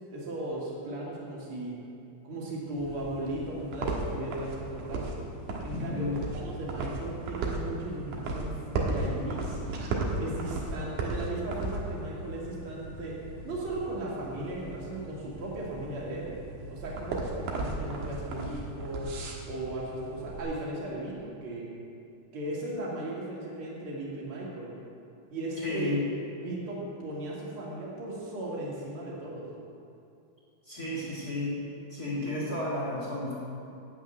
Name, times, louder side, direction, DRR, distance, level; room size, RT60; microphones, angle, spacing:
voice 1, 0.1-1.7 2.2-5.2 5.6-6.1 6.4-9.6 10.2-13.2 13.4-16.4 16.7-19.1 19.5-21.7 22.3-24.7 25.3-26.0 26.4-29.5, right 1 dB, 40° right, -5 dB, 2.5 m, -36 dB
sound 1, 2.8-20.4, right 2 dB, 65° right, 2.2 m, -36 dB
voice 2, 5.7-6.2 25.6-26.0 30.6-31.6 31.9-33.3, left 2 dB, 60° left, -6 dB, 0.9 m, -32 dB
9.3 x 8.1 x 9.0 m, 2.6 s
omnidirectional pair, 5.2 m